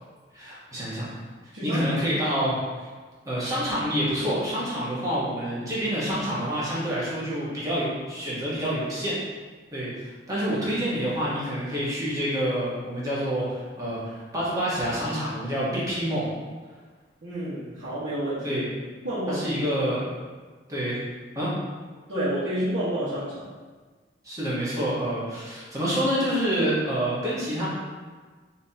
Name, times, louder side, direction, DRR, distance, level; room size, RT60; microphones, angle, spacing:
voice 1, 0.3-1.1 1.6-2.9 3.2-9.2 9.7-16.3 18.4-18.6 19.3-20.1 20.7-21.0 21.3-21.5 24.2-27.7, equal, 20° right, -8 dB, 1.2 m, -27 dB
voice 2, 1.5-1.9 17.2-18.6 19.0-19.4 22.1-23.5, right 1 dB, 80° right, -13 dB, 1.2 m, -29 dB
5.6 x 2.8 x 2.8 m, 1.4 s
head